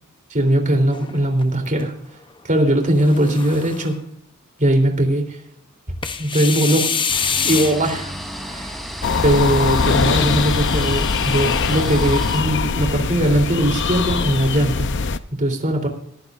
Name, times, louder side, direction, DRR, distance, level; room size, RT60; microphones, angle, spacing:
voice 1, 0.3-1.9 2.4-3.9 4.6-5.4 6.2-6.9 7.4-8.1 8.5-8.8 9.2-15.9, right 1 dB, 35° right, 3 dB, 3.4 m, -19 dB
sound 1, 0.9-1.8 2.8-4.0 6.0-8.0, left 6 dB, 20° left, 0.8 m, -25 dB
sound 2, 7.1-12.4, equal, ahead, 3.2 m, -33 dB
sound 3, 9.0-15.2, left 5 dB, 55° left, 0.7 m, -21 dB
22.0 x 15.0 x 2.6 m, 0.67 s
head